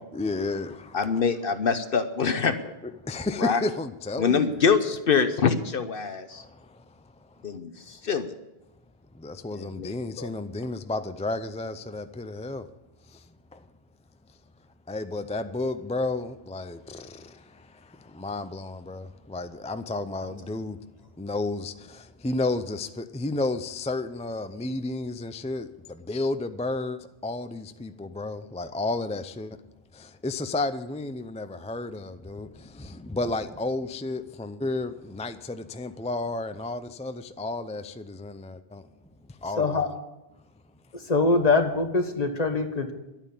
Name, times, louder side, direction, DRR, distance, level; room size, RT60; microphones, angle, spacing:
voice 1, 0.1-1.2 2.8-4.5 6.3-7.0 7.3-7.4 9.1-12.7 13.1-13.3 13.5-13.6 14.9-20.8 21.2-29.6 29.9-38.9 39.4-39.8, left 2 dB, 10° left, 0.4 m, -32 dB
voice 2, 0.9-2.7 3.4-3.6 4.2-6.4 7.4-8.3 9.5-9.9 10.2-10.3, left 6 dB, 65° left, 1.0 m, -25 dB
voice 3, 39.6-39.9 41.1-42.9, left 3 dB, 40° left, 1.5 m, -23 dB
12.0 x 9.1 x 8.4 m
omnidirectional pair, 1.0 m